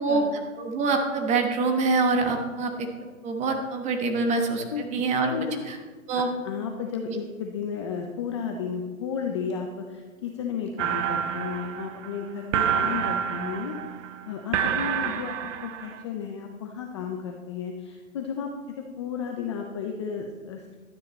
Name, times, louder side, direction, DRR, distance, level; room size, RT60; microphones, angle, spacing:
voice 1, 0.0-0.4 4.7-5.7 6.1-13.8 14.2-15.3 15.6-18.5 18.8-20.8, left 7 dB, 20° left, 3 dB, 0.4 m, -33 dB
voice 2, 0.6-2.9 3.2-5.3 5.7-5.8 6.1-6.3, right 3 dB, 15° right, 4 dB, 1.1 m, -25 dB
sound 1, 10.8-16.0, right 8 dB, 55° right, 0.8 m, -28 dB
12.0 x 9.4 x 4.1 m, 1.4 s
hypercardioid pair, 145°, 41 cm